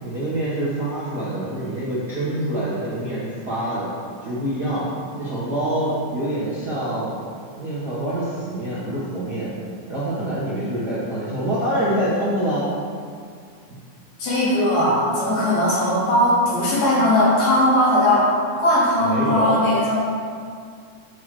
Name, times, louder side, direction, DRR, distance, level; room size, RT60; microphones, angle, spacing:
voice 1, 0.0-3.9 4.2-4.9 5.2-7.1 7.5-9.5 9.9-12.7 19.0-19.6, right 1 dB, 75° right, -9 dB, 0.9 m, -25 dB
voice 2, 14.2-18.3 18.6-20.0, left 1 dB, 85° left, -8 dB, 4.2 m, -18 dB
8.3 x 7.6 x 3.2 m, 2.2 s
omnidirectional pair, 4.2 m